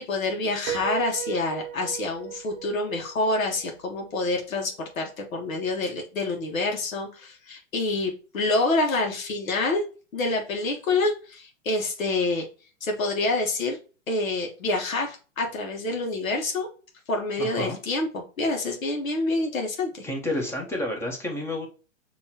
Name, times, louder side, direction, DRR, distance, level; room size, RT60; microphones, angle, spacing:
voice 1, 0.0-9.8 10.1-12.4 12.8-13.8 14.1-16.7 17.1-20.1, left 2 dB, 85° left, 2 dB, 1.4 m, -27 dB
Piano, 0.7-4.4, right 11 dB, 35° right, 0.6 m, -37 dB
voice 2, 17.4-17.8 20.0-21.7, left 1 dB, 5° left, 0 dB, 0.8 m, -30 dB
5.5 x 3.0 x 2.8 m, 0.35 s
hypercardioid pair, 135°, 39 cm